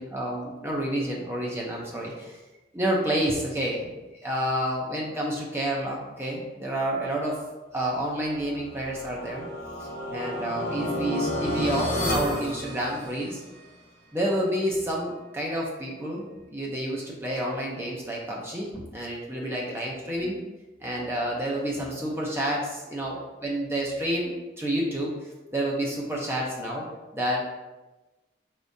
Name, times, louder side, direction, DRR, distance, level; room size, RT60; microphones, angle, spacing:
voice 1, 0.0-2.4 2.7-3.9 4.2-7.4 7.7-9.5 9.8-13.4 14.1-20.3 20.8-25.1 25.5-26.9 27.1-27.4, right 1 dB, 15° right, -3 dB, 0.6 m, -29 dB
sound 1, 8.3-13.5, left 1 dB, 45° left, 1.4 m, -31 dB
5.0 x 3.5 x 2.6 m, 1.1 s
head